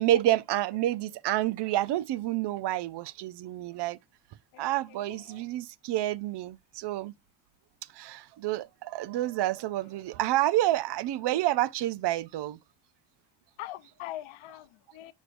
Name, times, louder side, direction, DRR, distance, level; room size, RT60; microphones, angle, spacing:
voice 1, 0.0-4.0 4.6-7.1 7.9-12.6, right 14 dB, 60° right, 0.5 m, -29 dB
voice 2, 4.5-5.5 11.2-11.3 13.6-15.1, left 14 dB, 85° left, 0.7 m, -43 dB
6.5 x 6.2 x 2.5 m
cardioid pair, 130°, 47 cm